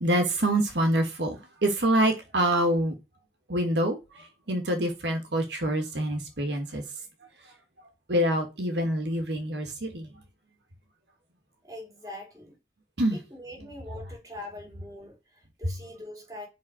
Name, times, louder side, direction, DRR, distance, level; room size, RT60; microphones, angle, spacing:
voice 1, 0.0-3.0 3.5-6.8 7.4-7.5 8.1-10.1 13.0-13.2, right 1 dB, 80° right, 1.4 m, -26 dB
voice 2, 11.6-12.6 13.1-16.5, left 1 dB, 20° right, 2.6 m, -43 dB
5.1 x 4.0 x 4.8 m
head